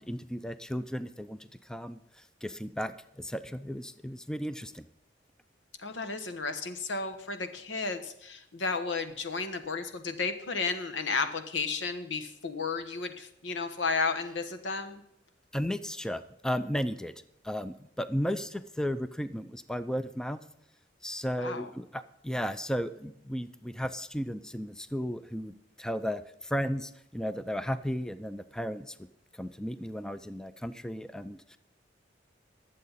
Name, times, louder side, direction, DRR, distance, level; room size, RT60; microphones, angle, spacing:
voice 1, 0.0-2.0 2.4-4.8 15.5-17.1 17.4-20.4 21.0-28.9 29.4-31.6, equal, 5° left, 12 dB, 0.4 m, -34 dB
voice 2, 5.8-15.0 21.4-21.7, left 4 dB, 85° left, 9 dB, 1.3 m, -33 dB
20.5 x 7.6 x 4.1 m, 0.81 s
head